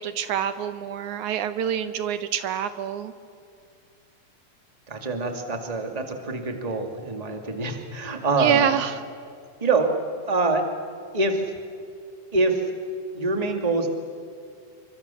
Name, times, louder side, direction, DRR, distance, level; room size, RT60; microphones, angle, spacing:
voice 1, 0.0-3.1 8.3-9.0, right 9 dB, 75° right, 11 dB, 2.2 m, -26 dB
voice 2, 4.9-8.6 9.6-9.9 10.3-10.6 11.1-11.4 12.3-12.6 13.1-13.9, right 3 dB, 15° right, 4 dB, 1.8 m, -25 dB
29.0 x 24.5 x 7.0 m, 2.4 s
omnidirectional pair, 3.6 m